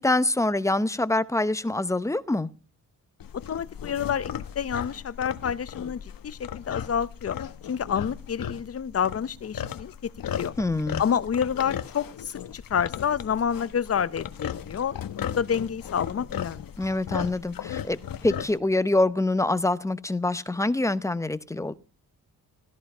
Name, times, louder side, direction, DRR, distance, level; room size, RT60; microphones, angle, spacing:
voice 1, 0.0-2.5 10.6-11.0 16.8-21.7, left 2 dB, 10° left, 0.7 m, -25 dB
sound 1, 3.2-18.6, left 9 dB, 65° left, 1.2 m, -36 dB
voice 2, 3.3-7.4 7.7-10.1 10.4-10.5 11.0-16.7, left 8 dB, 40° left, 0.7 m, -28 dB
16.5 x 13.5 x 5.5 m
wide cardioid pair, 150°, 37 cm